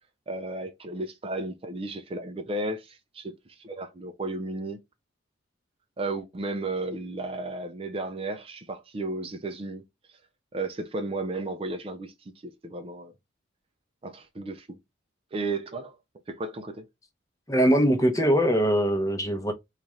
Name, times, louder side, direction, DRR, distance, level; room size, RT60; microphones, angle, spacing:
voice 1, 0.3-4.8 6.0-9.8 10.1-10.2 10.5-13.1 14.0-14.8 15.3-16.0 16.3-16.9, right 2 dB, 30° right, 0.4 m, -34 dB
voice 2, 17.5-19.5, equal, 15° left, 0.7 m, -22 dB
4.0 x 2.4 x 3.1 m
head